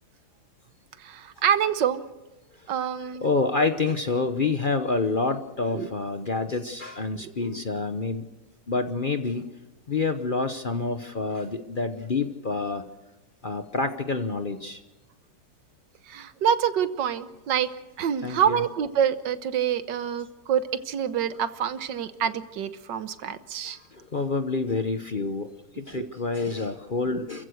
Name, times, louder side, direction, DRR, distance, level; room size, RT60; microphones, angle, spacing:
voice 1, 1.0-2.0 2.7-3.3 5.7-5.9 7.1-7.3 16.1-17.7 18.0-23.8 25.9-26.1 27.1-27.2, right 8 dB, 85° right, 12 dB, 1.7 m, -26 dB
voice 2, 3.2-8.2 8.7-9.5 9.9-12.8 13.4-14.8 18.2-18.6 23.9-25.5 25.8-27.5, left 3 dB, 40° left, 8 dB, 0.8 m, -27 dB
28.5 x 15.0 x 6.4 m, 1.1 s
omnidirectional pair, 1.9 m